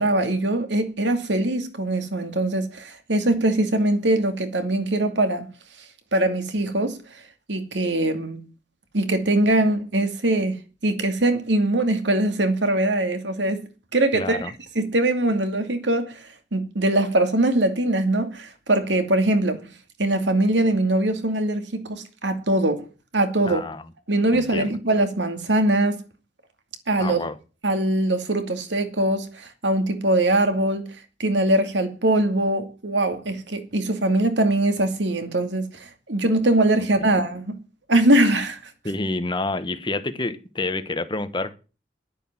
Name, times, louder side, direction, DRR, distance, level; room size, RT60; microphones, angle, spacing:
voice 1, 0.0-5.5 6.1-7.0 7.5-8.4 8.9-10.6 10.8-13.6 13.9-14.4 14.8-16.2 16.5-19.6 20.0-22.9 23.1-23.6 24.1-26.0 26.9-27.3 27.6-30.9 31.2-37.6 37.9-38.6, right 1 dB, 85° right, 2.4 m, -22 dB
voice 2, 14.1-14.5 23.5-23.8 24.3-24.7 27.0-27.4 36.8-36.9 38.8-41.5, left 2 dB, 25° left, 1.2 m, -28 dB
11.0 x 10.0 x 7.4 m
head